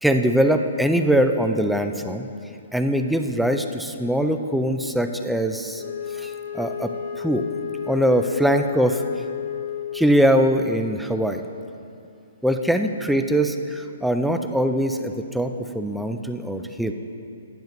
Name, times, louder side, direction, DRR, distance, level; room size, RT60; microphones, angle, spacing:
voice 1, 0.0-2.3 2.7-5.8 6.1-6.9 7.2-7.5 7.9-9.0 9.9-11.4 12.4-16.9, equal, ahead, 6 dB, 0.3 m, -22 dB
Wind instrument woodwind instrument, 5.8-10.4, left 8 dB, 55° left, 0.5 m, -31 dB
10.5 x 8.8 x 2.6 m, 2.5 s
hypercardioid pair, 145°, 0 cm